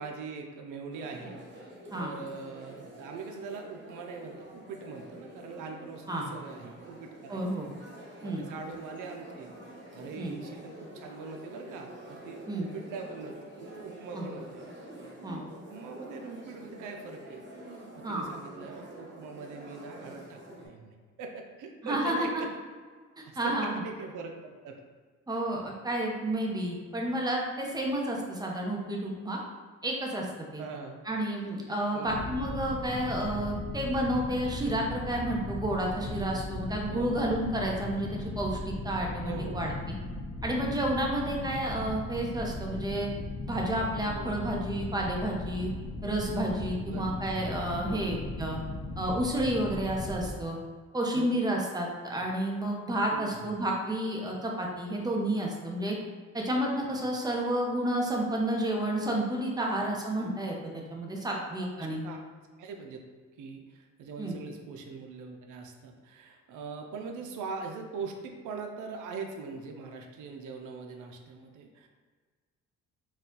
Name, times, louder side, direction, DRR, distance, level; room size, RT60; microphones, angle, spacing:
voice 1, 0.0-1.4 1.9-7.7 8.2-9.5 9.9-13.3 13.6-14.6 15.2-17.5 17.9-22.5 23.4-24.8 25.3-25.4 28.1-28.3 30.6-31.0 31.9-32.4 36.9-37.3 39.2-39.7 41.3-41.7 44.0-44.3 46.9-47.1 47.9-48.2 51.1-51.3 53.1-53.6 59.5-59.7 61.3-62.2 62.6-63.0 63.4-71.9, right 4 dB, 80° right, 3 dB, 0.6 m, -42 dB
sound 1, 0.9-20.7, right 1 dB, 40° right, 1.0 m, -47 dB
voice 2, 7.3-7.7 8.2-8.4 10.2-10.4 12.5-12.7 14.1-14.3 15.2-15.4 18.0-18.2 21.8-22.3 23.4-23.8 25.3-29.4 29.8-30.3 30.5-30.6 31.0-39.7 40.4-43.1 43.4-45.7 46.0-48.6 49.0-50.6 50.9-55.9 56.3-62.1 64.2-64.3, right 1 dB, 15° right, -1 dB, 0.8 m, -31 dB
sound 2, 32.0-50.3, left 2 dB, 45° left, 0.6 m, -37 dB
4.1 x 2.4 x 3.8 m, 1.5 s
cardioid pair, 90°, 30 cm